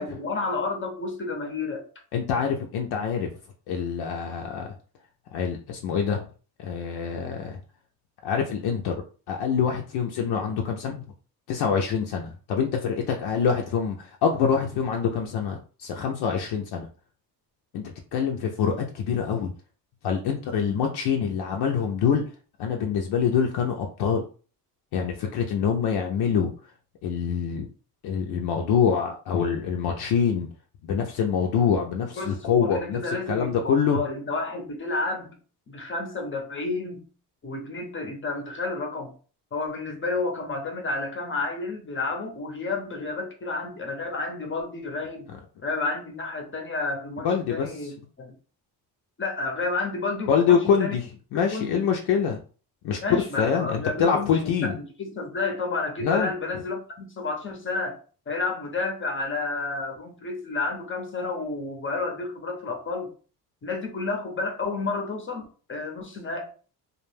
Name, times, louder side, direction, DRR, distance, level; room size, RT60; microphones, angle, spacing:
voice 1, 0.0-1.8 32.2-35.4 35.7-37.1 37.4-39.1 39.5-45.3 45.6-48.3 49.2-51.0 51.5-51.8 53.0-58.0 58.3-63.1 63.6-66.5, left 3 dB, 30° left, 2 dB, 0.7 m, -31 dB
voice 2, 2.1-3.3 3.7-4.7 5.3-6.3 6.6-7.6 8.2-9.0 9.3-11.1 11.5-16.9 17.7-19.5 20.0-22.2 22.6-24.2 24.9-26.5 27.0-27.7 28.0-30.5 30.8-34.0 47.2-47.9 50.3-52.4 52.8-53.0 53.4-54.8 56.0-56.3, left 7 dB, 75° left, 2 dB, 0.5 m, -25 dB
2.3 x 2.1 x 3.2 m, 0.38 s
cardioid pair, 100°, 40 cm